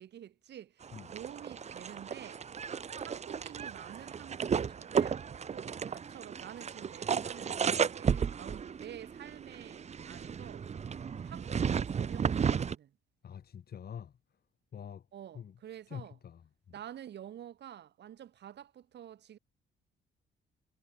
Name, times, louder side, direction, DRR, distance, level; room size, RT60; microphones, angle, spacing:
voice 1, 0.0-2.4 3.0-10.7 11.2-13.0 15.1-16.2 16.7-19.4, right 10 dB, 60° right, 1.6 m, -49 dB
sound 1, 0.8-12.8, right 7 dB, 35° right, 0.7 m, -34 dB
voice 2, 13.2-14.2 14.7-15.1 15.3-15.5 15.9-16.7, left 8 dB, 55° left, 2.8 m, -46 dB
cardioid pair, 90°, 20 cm